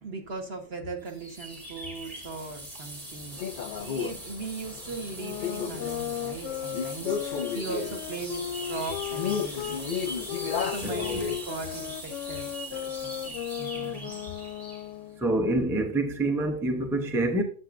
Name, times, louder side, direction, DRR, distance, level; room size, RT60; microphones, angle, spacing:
voice 1, 0.0-3.4 3.8-9.8 10.3-14.3, right 4 dB, 55° right, 1.6 m, -39 dB
sound 1, 1.0-14.9, right 1 dB, 30° right, 2.1 m, -41 dB
Male speech man speaking, 3.4-11.9, left 6 dB, 50° left, 0.7 m, -34 dB
sound 2, 5.1-9.8 10.3-15.2, left 12 dB, 90° left, 0.9 m, -36 dB
voice 2, 10.8-11.2 15.2-17.4, right 2 dB, 5° right, 0.7 m, -26 dB
10.5 x 7.3 x 2.6 m
omnidirectional pair, 1.2 m